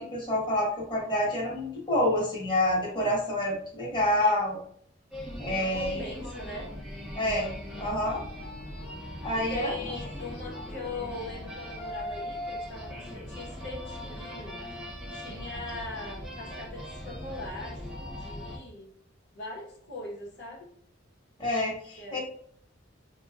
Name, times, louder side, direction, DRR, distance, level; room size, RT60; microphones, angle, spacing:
voice 1, 0.0-4.6 5.4-6.0 7.1-7.5 7.8-8.2 9.2-9.7 21.4-22.2, left 1 dB, 25° left, -4 dB, 1.1 m, -27 dB
voice 2, 4.1-4.5 5.7-6.7 9.3-14.6 15.1-18.9 19.3-20.7 22.0-22.2, left 2 dB, 65° left, -3 dB, 0.9 m, -40 dB
sound 1, 5.1-18.6, left 1 dB, 5° right, 0.9 m, -39 dB
4.2 x 2.2 x 2.3 m, 0.62 s
head